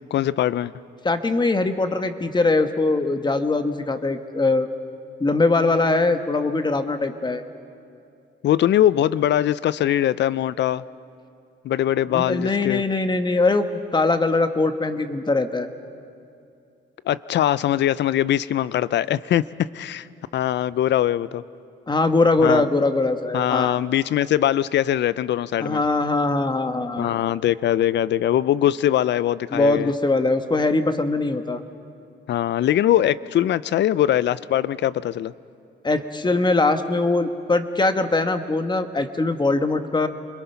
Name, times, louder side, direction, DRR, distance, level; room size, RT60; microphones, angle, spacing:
voice 1, 0.1-0.7 8.4-10.8 11.6-12.8 17.1-20.1 20.3-21.4 22.4-22.6 23.3-25.8 27.0-29.9 32.3-35.3, left 11 dB, 60° left, 18 dB, 0.5 m, -21 dB
voice 2, 1.0-4.7 5.2-7.4 12.1-13.7 13.9-15.7 21.9-23.8 25.6-27.2 29.5-31.6 35.8-40.1, left 3 dB, 20° left, 8 dB, 1.3 m, -21 dB
28.0 x 21.5 x 5.8 m, 2.4 s
cardioid pair, 90°, 20 cm